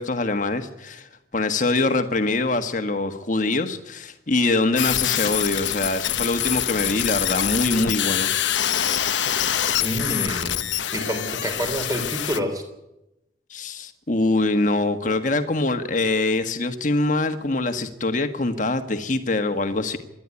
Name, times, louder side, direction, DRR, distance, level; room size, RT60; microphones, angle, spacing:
voice 1, 0.0-8.3 13.5-20.0, left 2 dB, 40° left, 8 dB, 1.6 m, -24 dB
sound 1, 4.8-12.4, left 11 dB, 75° left, 0.9 m, -25 dB
voice 2, 9.8-10.6 10.9-12.6, equal, 20° right, 5 dB, 3.5 m, -28 dB
25.5 x 11.5 x 9.7 m, 0.93 s
head